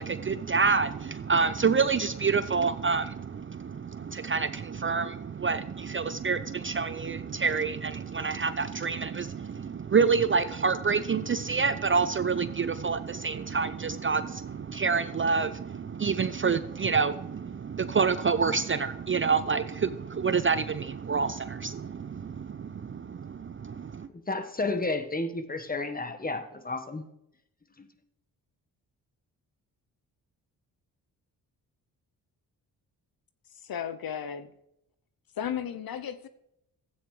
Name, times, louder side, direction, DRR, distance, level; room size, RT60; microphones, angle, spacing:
voice 1, 0.0-24.1, right 5 dB, 30° right, 13 dB, 0.5 m, -28 dB
voice 2, 24.1-27.1 27.8-27.9, left 2 dB, 20° left, 8 dB, 1.3 m, -32 dB
voice 3, 33.5-34.5 35.3-36.3, left 8 dB, 55° left, 12 dB, 0.7 m, -35 dB
13.5 x 8.6 x 3.2 m, 0.80 s
supercardioid pair, 45°, 44 cm